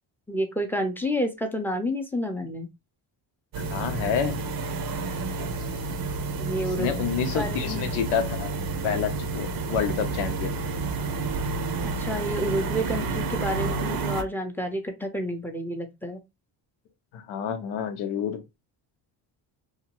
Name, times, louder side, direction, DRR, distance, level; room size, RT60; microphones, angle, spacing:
voice 1, 0.3-2.7 6.4-6.9 7.3-7.8 12.0-16.2, equal, 5° left, 0.6 m, -29 dB
sound 1, 3.5-14.2, right 3 dB, 45° right, 0.6 m, -30 dB
voice 2, 3.7-4.4 6.8-8.5 8.8-10.6 17.1-18.4, left 8 dB, 85° left, 0.8 m, -28 dB
2.8 x 2.3 x 2.9 m
cardioid pair, 90°, 49 cm